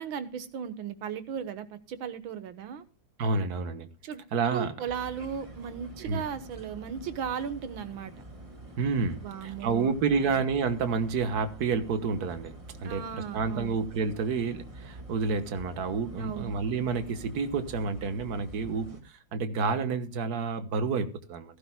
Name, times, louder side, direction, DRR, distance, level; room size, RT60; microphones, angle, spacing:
voice 1, 0.0-2.8 4.0-4.2 4.5-8.1 9.2-10.4 12.8-13.8 16.2-16.5, right 8 dB, 85° right, 2.0 m, -36 dB
voice 2, 3.2-3.9 4.3-4.7 6.0-6.2 8.8-12.5 12.8-21.5, right 4 dB, 55° right, 1.6 m, -29 dB
sound 1, 4.8-19.0, right 1 dB, 15° right, 1.8 m, -46 dB
16.0 x 14.5 x 2.2 m
omnidirectional pair, 2.1 m